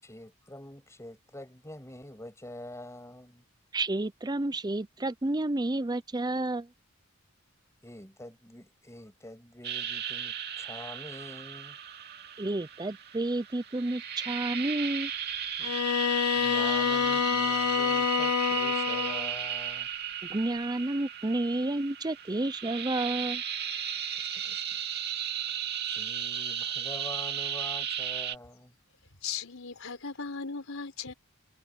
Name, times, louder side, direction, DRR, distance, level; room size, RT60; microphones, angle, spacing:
voice 1, 0.0-3.4 7.8-11.8 16.3-19.9 24.3-24.6 25.9-28.7, left 1 dB, 15° left, 7.4 m, -45 dB
voice 2, 3.7-6.7 12.4-15.1 20.3-23.4, right 2 dB, 20° right, 0.5 m, -30 dB
sound 1, 9.6-28.4, right 9 dB, 45° right, 2.6 m, -35 dB
Bowed string instrument, 15.6-19.3, left 7 dB, 85° left, 0.6 m, -27 dB
voice 3, 29.2-31.1, left 5 dB, 65° left, 4.6 m, -37 dB
head